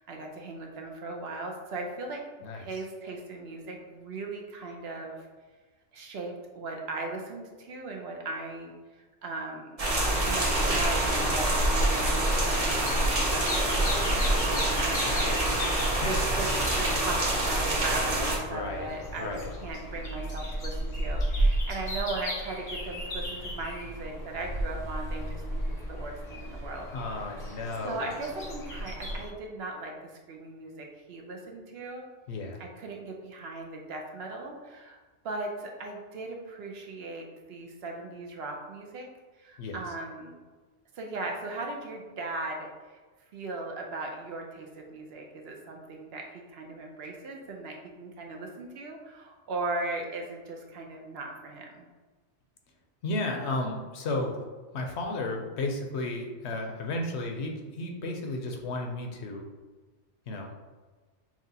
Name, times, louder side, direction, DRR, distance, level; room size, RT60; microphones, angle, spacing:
voice 1, 0.0-2.2 2.5-5.3 5.9-9.8 10.2-25.6 25.9-26.9 27.1-27.4 27.8-32.0 32.6-35.0 35.2-39.1 39.4-40.4 40.9-43.0 43.3-51.9, right 2 dB, 65° right, 1 dB, 0.8 m, -38 dB
sound 1, 9.8-18.4, right 1 dB, 35° right, 0.8 m, -27 dB
sound 2, 10.1-29.3, right 1 dB, 40° left, 0.7 m, -33 dB
voice 2, 15.1-15.4 16.0-16.2 18.5-18.9 19.2-19.5 26.9-28.0 32.3-32.6 39.6-39.8 53.0-54.5 54.7-59.5 60.3-60.5, left 2 dB, 70° left, 2 dB, 0.9 m, -33 dB
5.8 x 2.4 x 2.7 m, 1.3 s
omnidirectional pair, 1.2 m